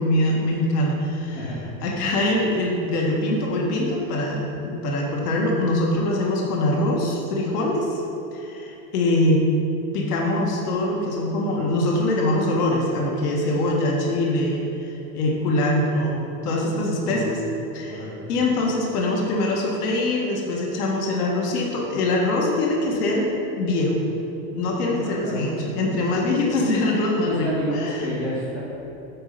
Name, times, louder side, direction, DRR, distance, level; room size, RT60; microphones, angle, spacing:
voice 1, 0.0-1.4 1.8-8.0 8.3-9.4 9.9-17.4 17.7-24.0 24.5-27.5 27.8-28.0, left 1 dB, 85° left, -2 dB, 1.7 m, -23 dB
voice 2, 1.3-1.7 16.9-17.5 17.9-18.4 24.9-25.5 27.2-28.6, equal, 45° left, -7 dB, 2.0 m, -31 dB
9.5 x 4.6 x 6.8 m, 2.9 s
supercardioid pair, 175°, 45 cm